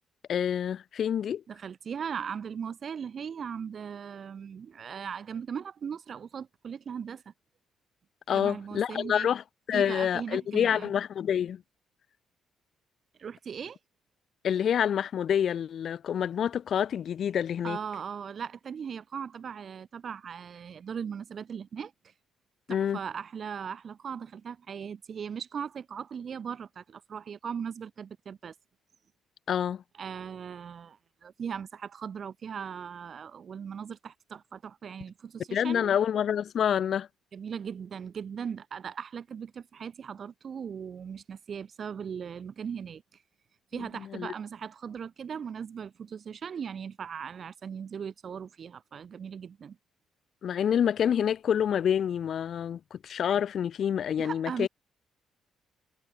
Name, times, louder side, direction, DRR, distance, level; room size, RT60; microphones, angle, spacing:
voice 1, 0.3-1.4 8.3-9.4 9.7-11.6 14.4-17.8 22.7-23.0 29.5-29.8 35.5-37.1 43.8-44.3 50.4-54.7, left 9 dB, 55° left, 0.5 m, -27 dB
voice 2, 1.5-7.3 8.3-9.3 9.7-10.9 13.2-13.8 17.6-21.9 22.7-28.5 30.0-35.9 37.3-43.0 43.7-49.8 54.2-54.7, right 7 dB, 45° right, 0.6 m, -38 dB
cardioid pair, 115°, 0 cm